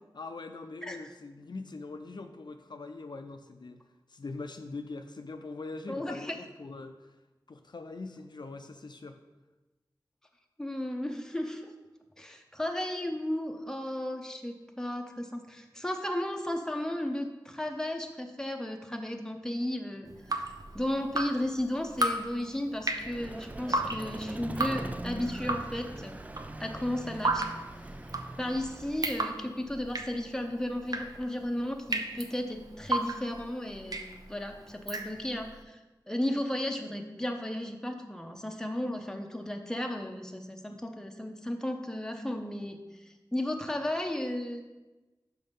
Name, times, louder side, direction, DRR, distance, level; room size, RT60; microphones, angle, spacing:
voice 1, 0.1-3.8 4.1-7.1 7.5-9.2, left 3 dB, 65° left, 7 dB, 0.5 m, -42 dB
voice 2, 5.9-6.4 10.6-11.7 12.2-26.2 26.6-27.5 28.4-34.0 34.3-35.8 36.1-42.8 43.3-44.6, left 1 dB, 5° left, 3 dB, 0.8 m, -34 dB
Drip, 20.1-35.5, right 2 dB, 50° right, 0.7 m, -35 dB
Vehicle, 22.9-29.4, right 1 dB, 20° right, 0.3 m, -41 dB
5.5 x 5.4 x 5.3 m, 1.1 s
wide cardioid pair, 60°, 8 cm